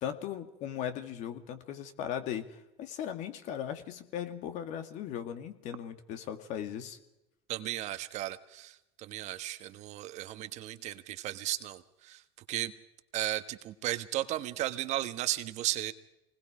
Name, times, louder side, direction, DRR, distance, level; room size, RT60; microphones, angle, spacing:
voice 1, 0.0-7.0, left 9 dB, 60° left, 7 dB, 2.2 m, -38 dB
voice 2, 7.5-12.2 12.5-12.7 13.1-15.9, right 15 dB, 55° right, 10 dB, 1.4 m, -35 dB
26.0 x 20.0 x 5.0 m, 0.92 s
supercardioid pair, 100°, 14 cm